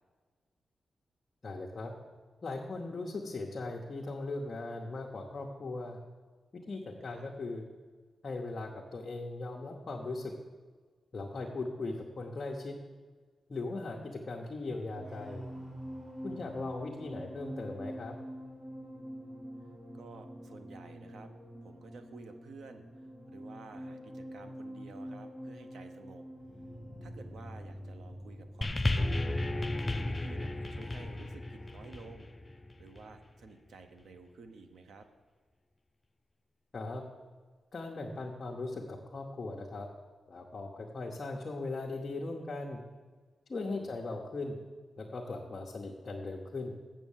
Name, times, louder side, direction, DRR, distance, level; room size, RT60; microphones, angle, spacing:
voice 1, 1.4-1.9 2.4-6.0 6.5-7.6 8.2-10.3 11.1-12.8 13.5-15.4 16.2-18.1 36.7-37.0 37.7-39.9 40.3-42.8 43.5-44.6 45.0-46.8, left 2 dB, 35° left, -2 dB, 0.9 m, -39 dB
sound 1, 14.7-31.3 31.6-31.9, equal, 60° right, 2.7 m, -46 dB
voice 2, 16.3-16.6 19.9-21.3 21.6-22.8 23.3-26.2 27.0-29.3 29.8-32.3 32.8-35.1 43.6-43.9, right 4 dB, 80° right, 8 dB, 0.8 m, -52 dB
sound 2, 28.6-33.2 34.0-34.1, left 2 dB, 20° left, 0.4 m, -34 dB
7.5 x 7.4 x 7.2 m, 1.5 s
wide cardioid pair, 170°, 0 cm